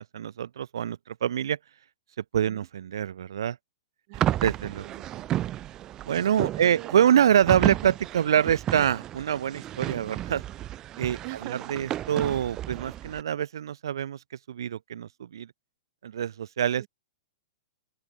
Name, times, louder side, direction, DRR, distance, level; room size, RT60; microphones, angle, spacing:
voice 1, 0.0-1.6 2.3-3.6 4.4-4.8 6.0-10.4 11.0-14.2 14.5-15.5 16.0-16.9, right 9 dB, 75° right, 0.8 m, -25 dB
sound 1, 4.1-13.2, right 13 dB, 25° right, 0.5 m, -32 dB
voice 2, 4.1-4.4 4.8-5.3 6.5-7.0 7.5-7.6 11.2-11.7 16.8-16.9, right 29 dB, 45° right, 3.2 m, -42 dB
open air
hypercardioid pair, 140°, 2 cm